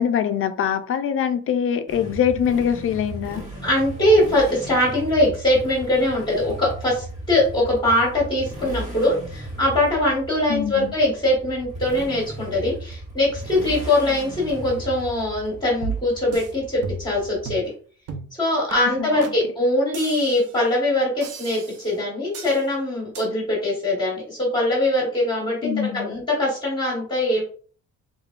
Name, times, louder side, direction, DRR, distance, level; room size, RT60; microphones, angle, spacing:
voice 1, 0.0-3.4 10.5-10.9 19.0-19.2 25.6-26.1, left 8 dB, 45° left, 0.4 m, -23 dB
Motorcycle, 1.9-17.7, right 1 dB, 20° right, 1.4 m, -36 dB
voice 2, 3.6-17.7 18.4-27.4, left 1 dB, 15° left, 1.2 m, -22 dB
sound 1, 15.8-16.5 16.8-17.2 17.4-17.7 18.1-18.3 18.7-18.8 19.2-19.4 19.9-20.6 21.2-21.9 22.3-22.6 23.1-23.3, right 5 dB, 50° right, 0.5 m, -34 dB
3.6 x 3.4 x 2.4 m
cardioid pair, 175°, 33 cm